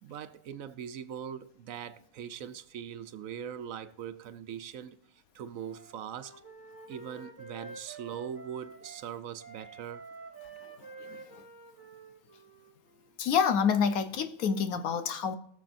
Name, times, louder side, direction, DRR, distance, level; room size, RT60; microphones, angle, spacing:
voice 1, 0.0-6.3 6.9-10.1, right 8 dB, 75° right, 1.1 m, -41 dB
Wind instrument woodwind instrument, 5.5-9.1 9.4-13.2, right 4 dB, 10° right, 1.9 m, -49 dB
voice 2, 13.2-15.3, left 7 dB, 85° left, 1.3 m, -27 dB
20.5 x 6.9 x 2.5 m
omnidirectional pair, 1.5 m